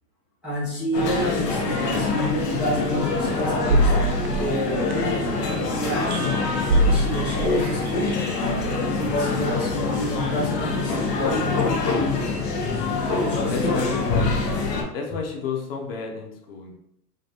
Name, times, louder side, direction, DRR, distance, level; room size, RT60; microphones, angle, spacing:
voice 1, 0.4-6.2 6.7-8.1 8.9-12.1 13.1-13.9, equal, ahead, -11 dB, 0.5 m, -29 dB
sound 1, 0.9-14.8, left 3 dB, 90° left, 1.1 m, -25 dB
sound 2, 1.7-1.8 2.5-2.6 3.7-5.4 5.8-8.9 9.7-9.8, right 1 dB, 70° right, 0.6 m, -24 dB
voice 2, 13.5-14.3 14.9-16.8, left 5 dB, 40° left, 0 dB, 0.6 m, -30 dB
5.0 x 2.1 x 2.8 m, 0.76 s
hypercardioid pair, 150°, 47 cm